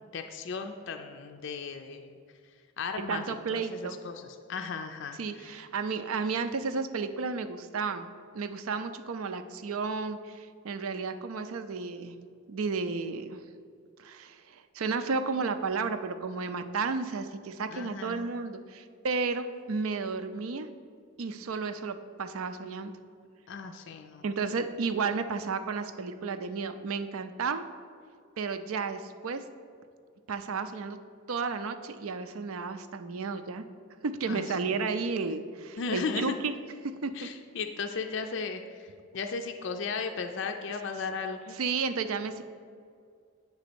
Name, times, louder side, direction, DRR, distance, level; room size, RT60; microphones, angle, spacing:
voice 1, 0.0-2.2 2.8-5.5 17.7-18.3 23.5-24.2 34.3-34.8 35.8-36.3 37.1-41.6, left 5 dB, 55° left, 5 dB, 0.4 m, -36 dB
voice 2, 3.0-4.0 5.2-8.1 8.3-12.2 12.5-13.4 14.0-20.7 21.2-22.9 24.2-27.7 28.4-29.4 30.3-31.0 31.3-33.7 34.0-36.6 36.8-37.3 41.5-42.4, right 4 dB, 80° right, 11 dB, 0.5 m, -32 dB
8.2 x 4.1 x 6.8 m, 2.2 s
head